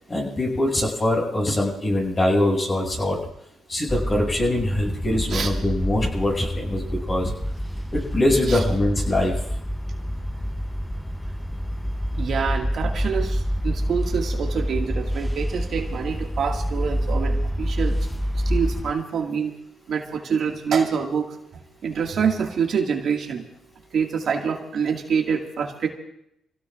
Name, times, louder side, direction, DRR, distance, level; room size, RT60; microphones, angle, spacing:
voice 1, 0.1-3.2 3.7-7.3 7.9-9.3, left 1 dB, 30° left, -1 dB, 6.7 m, -23 dB
sound 1, 3.9-18.9, equal, 10° left, 0.7 m, -27 dB
voice 2, 12.2-18.0 18.5-19.5 19.9-21.4 21.8-23.5 23.9-25.9, right 6 dB, 60° right, 1 dB, 1.9 m, -26 dB
28.0 x 17.0 x 2.5 m, 0.76 s
cardioid pair, 90°, 0 cm